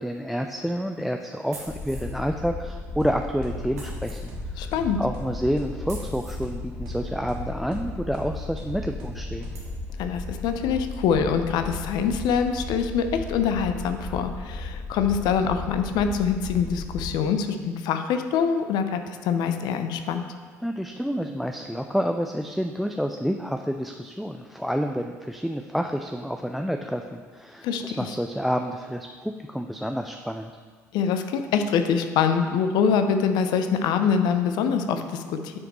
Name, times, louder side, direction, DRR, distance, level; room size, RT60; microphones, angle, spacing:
voice 1, 0.0-4.7 5.0-9.4 20.6-30.5, equal, ahead, 5 dB, 0.4 m, -29 dB
sound 1, 1.5-2.2 3.7-4.2 5.9-6.4 8.3-8.4 8.9-9.0 9.5-9.8, right 2 dB, 85° right, 1.3 m, -43 dB
sound 2, 1.7-17.1, left 2 dB, 30° left, 2.2 m, -35 dB
sound 3, 3.0-10.2, right 2 dB, 65° right, 1.2 m, -43 dB
voice 2, 4.6-5.0 10.0-20.2 27.6-27.8 30.9-35.6, left 6 dB, 60° left, 8 dB, 0.6 m, -24 dB
9.5 x 4.9 x 3.1 m, 1.5 s
hypercardioid pair, 60°, 8 cm